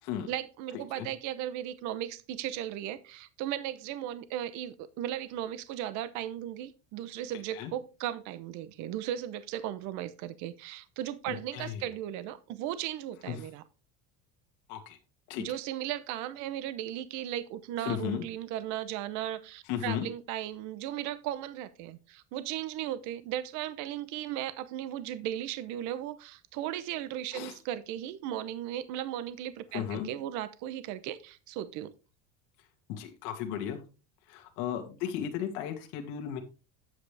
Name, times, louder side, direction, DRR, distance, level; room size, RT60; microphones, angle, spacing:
voice 1, 0.3-13.6 15.4-31.9, right 12 dB, 55° right, 0.8 m, -36 dB
voice 2, 11.3-11.8 13.3-13.5 14.7-15.0 15.3-15.4 17.9-18.2 19.7-20.1 27.3-27.5 29.7-30.1 32.9-33.8 34.3-36.4, left 9 dB, 65° left, 1.9 m, -35 dB
9.4 x 7.6 x 3.3 m
cardioid pair, 160°, 35 cm